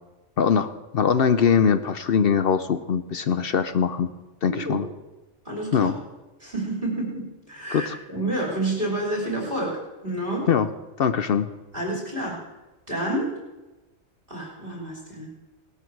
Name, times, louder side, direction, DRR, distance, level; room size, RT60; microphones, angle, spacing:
voice 1, 0.4-4.1 4.4-4.9 5.7-5.9 7.7-8.0 10.5-10.7 11.0-11.5, left 7 dB, 55° left, 11 dB, 0.8 m, -22 dB
voice 2, 4.5-4.8 5.4-5.9 6.4-10.5 11.7-12.4 12.9-13.3 14.3-15.3, right 1 dB, 45° right, -1 dB, 3.2 m, -29 dB
18.0 x 13.5 x 4.6 m, 1.1 s
omnidirectional pair, 1.3 m